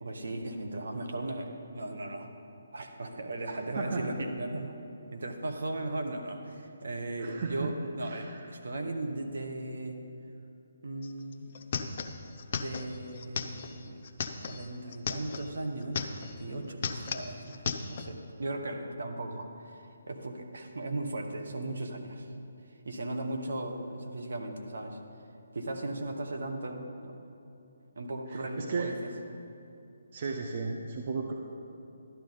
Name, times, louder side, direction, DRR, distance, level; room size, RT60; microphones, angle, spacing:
voice 1, 0.0-2.3 2.7-4.8 5.1-10.0 10.8-11.5 12.5-14.0 14.4-22.3 22.8-25.0 25.5-27.2 28.0-28.9, right 2 dB, 65° right, 4 dB, 1.2 m, -37 dB
voice 2, 3.5-4.0 7.2-7.7 8.0-8.5 28.3-28.9 30.1-31.3, right 4 dB, 45° right, 1 dB, 0.8 m, -35 dB
sound 1, 11.0-11.1 11.3-15.5 15.8-16.4 16.7-18.1, left 5 dB, 40° left, 0.7 m, -36 dB
12.0 x 11.0 x 4.0 m, 2.7 s
figure-of-eight pair, 145°, 0 cm